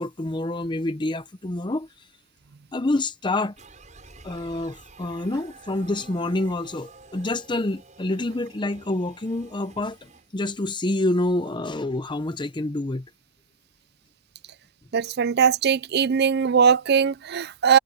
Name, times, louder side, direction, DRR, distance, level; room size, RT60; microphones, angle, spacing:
voice 1, 0.0-2.1 2.7-3.5 4.2-13.1, left 2 dB, 25° left, 0.7 m, -27 dB
sound 1, 3.6-10.3, right 3 dB, 35° right, 6.8 m, -49 dB
voice 2, 14.9-17.8, right 7 dB, 55° right, 0.4 m, -20 dB
head